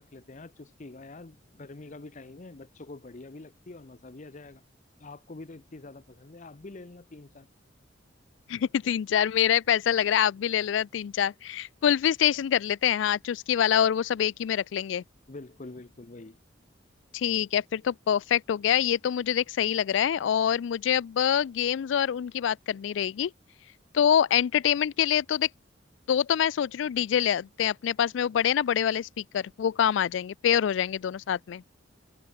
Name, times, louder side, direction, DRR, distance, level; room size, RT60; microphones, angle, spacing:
voice 1, 0.0-4.6 5.0-7.5 15.3-16.4, left 2 dB, 40° left, 0.8 m, -45 dB
voice 2, 8.5-15.0 17.1-23.3 23.9-25.5 26.1-31.6, left 9 dB, 75° left, 0.3 m, -25 dB
head